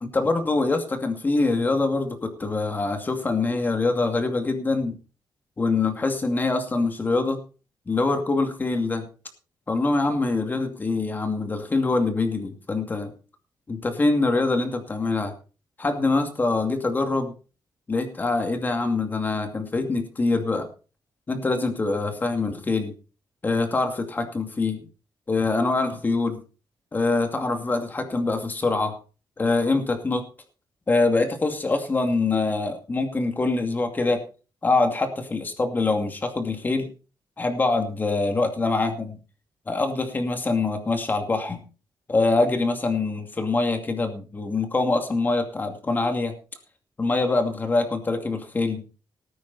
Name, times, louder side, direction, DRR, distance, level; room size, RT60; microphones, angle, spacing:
voice 1, 0.0-5.0 5.6-7.4 7.9-9.1 9.7-13.1 13.7-15.3 15.8-17.3 17.9-20.7 21.3-22.9 23.4-24.9 25.3-26.4 26.9-28.9 29.4-30.3 30.9-34.2 34.6-36.9 37.4-39.2 39.7-41.6 42.1-46.3 47.0-48.8, left 3 dB, 20° left, 5 dB, 2.5 m, -24 dB
18.5 x 9.5 x 4.2 m, 0.35 s
wide cardioid pair, 170°, 8 cm